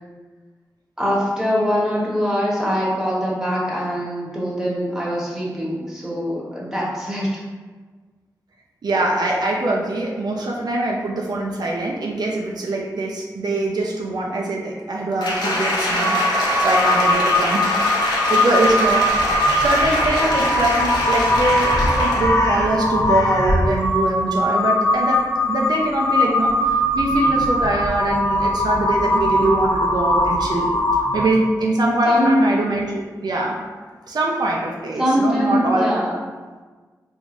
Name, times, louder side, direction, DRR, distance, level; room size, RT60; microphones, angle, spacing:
voice 1, 1.0-7.4 32.1-32.6 35.0-36.2, equal, 5° right, -6 dB, 1.1 m, -22 dB
voice 2, 8.8-30.7 31.1-33.6 34.1-35.9, right 2 dB, 70° right, -1 dB, 0.4 m, -23 dB
Applause, 15.2-22.3 22.8-22.9, left 1 dB, 90° left, 0.7 m, -23 dB
Crow, 16.0-31.5, left 1 dB, 45° left, 0.6 m, -20 dB
3.5 x 2.6 x 3.0 m, 1.4 s
cardioid pair, 65°, 7 cm